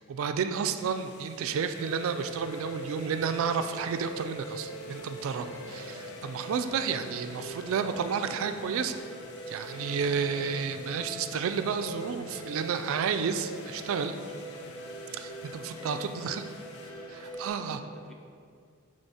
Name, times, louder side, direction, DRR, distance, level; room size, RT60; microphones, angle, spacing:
voice 1, 0.1-9.0 9.5-14.2 15.1-16.4 17.1-17.8, right 6 dB, 65° right, 9 dB, 0.3 m, -31 dB
sound 1, 0.6-16.9, left 4 dB, 50° left, 0.5 m, -53 dB
sound 2, 1.7-17.5, right 1 dB, 90° left, 0.7 m, -42 dB
voice 2, 15.8-16.4 17.5-18.1, right 1 dB, ahead, 0 dB, 0.5 m, -51 dB
9.0 x 3.3 x 4.1 m, 2.3 s
head